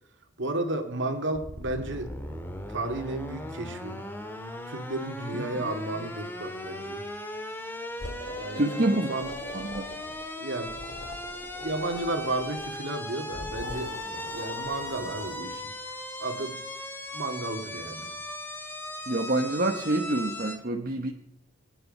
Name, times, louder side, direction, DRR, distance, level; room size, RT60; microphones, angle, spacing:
voice 1, 0.4-2.1 2.7-4.0 4.6-7.0 8.3-9.3 10.4-10.8 11.6-13.9 14.3-15.6 16.2-16.6 17.1-18.2, right 2 dB, 60° right, 5 dB, 2.4 m, -33 dB
sound 1, 1.3-20.6, left 1 dB, 10° left, 1.9 m, -38 dB
sound 2, 8.0-10.3 10.6-12.7 13.3-15.6, left 1 dB, 55° left, 2.4 m, -42 dB
voice 2, 8.5-9.1 9.5-9.9 19.1-21.1, right 2 dB, 45° right, 4 dB, 1.0 m, -27 dB
23.5 x 10.0 x 5.5 m, 0.86 s
head